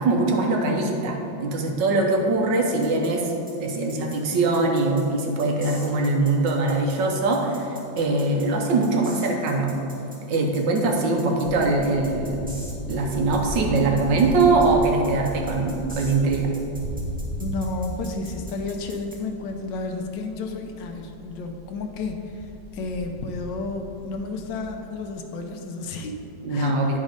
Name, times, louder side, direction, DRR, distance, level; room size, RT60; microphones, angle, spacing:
voice 1, 0.0-3.3 3.6-9.7 10.3-12.5 12.9-16.5 26.4-27.0, right 3 dB, 70° right, 1 dB, 1.5 m, -22 dB
sound 1, 2.8-19.2, equal, 5° right, 1.3 m, -45 dB
sound 2, 11.4-24.8, equal, 40° right, 0.7 m, -36 dB
voice 2, 17.4-27.0, left 3 dB, 75° left, 4 dB, 1.3 m, -32 dB
9.7 x 4.1 x 5.1 m, 2.8 s
omnidirectional pair, 2.1 m